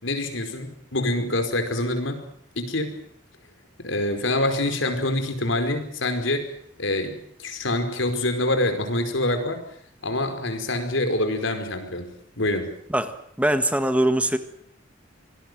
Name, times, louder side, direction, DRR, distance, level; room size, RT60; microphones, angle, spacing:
voice 1, 0.0-2.3 2.5-3.0 3.8-6.5 6.8-9.6 10.0-12.8, left 1 dB, 80° left, 7 dB, 4.9 m, -26 dB
voice 2, 12.9-14.4, right 1 dB, 5° right, 9 dB, 1.6 m, -22 dB
26.5 x 20.0 x 8.0 m, 0.67 s
head